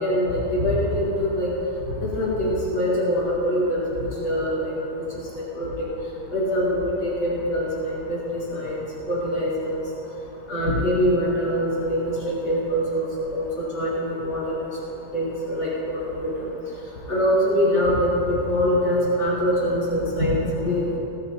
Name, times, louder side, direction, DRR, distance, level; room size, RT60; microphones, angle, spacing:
voice 1, 0.0-1.5 2.1-5.0 5.3-5.9 6.3-8.8 9.1-9.8 10.5-14.5 15.1-16.5 17.1-21.0, equal, 35° left, -8 dB, 4.5 m, -24 dB
19.0 x 13.5 x 2.9 m, 2.8 s
omnidirectional pair, 4.0 m